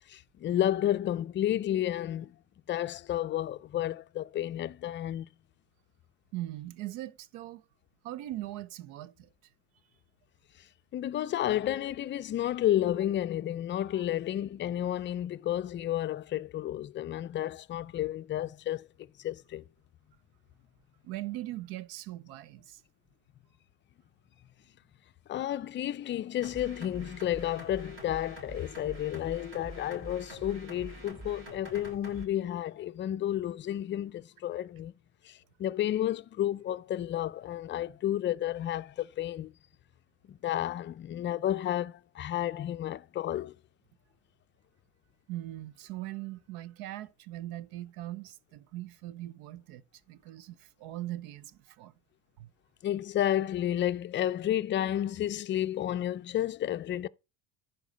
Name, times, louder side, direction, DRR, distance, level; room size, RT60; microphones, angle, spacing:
voice 1, 0.1-2.3 2.7-5.3 10.9-18.9 19.2-19.6 25.3-34.9 35.2-39.5 40.3-43.5 52.8-57.1, left 12 dB, 30° left, 0.4 m, -31 dB
voice 2, 6.3-7.6 8.0-9.3 13.9-14.0 21.0-22.8 45.3-51.9 52.4-52.5, right 15 dB, 80° right, 0.8 m, -40 dB
sound 1, 26.4-32.3, right 1 dB, 35° right, 4.7 m, -46 dB
11.0 x 4.6 x 5.3 m
supercardioid pair, 110°, 36 cm